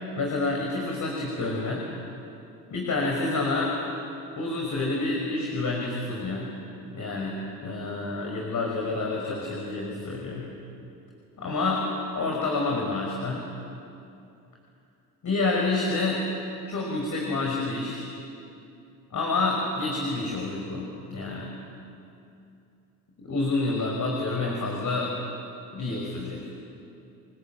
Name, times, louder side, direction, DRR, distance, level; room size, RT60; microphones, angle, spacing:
voice 1, 0.1-1.8 2.7-3.8 4.4-6.5 6.9-10.5 11.4-11.8 12.1-13.4 15.2-16.3 16.7-18.1 19.1-21.5 23.2-25.1 25.7-26.4, left 3 dB, 40° left, -1 dB, 5.8 m, -28 dB
28.5 x 20.5 x 9.0 m, 2.7 s
hypercardioid pair, 60°, 47 cm